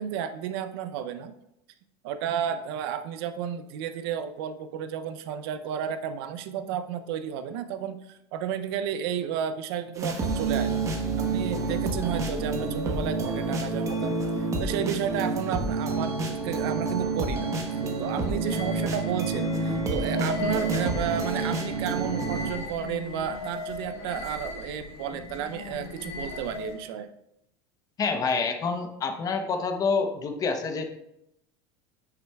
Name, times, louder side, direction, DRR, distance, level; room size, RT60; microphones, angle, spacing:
voice 1, 0.0-1.3 2.0-10.8 11.2-17.5 18.0-27.1, right 8 dB, 70° right, 11 dB, 0.6 m, -32 dB
sound 1, 10.0-22.5, right 3 dB, 25° right, 1.0 m, -28 dB
sound 2, 17.2-26.9, left 2 dB, 85° left, 1.2 m, -38 dB
voice 2, 28.0-30.8, left 4 dB, 25° left, 6 dB, 0.8 m, -27 dB
8.9 x 5.7 x 2.3 m, 0.82 s
supercardioid pair, 130°, 13 cm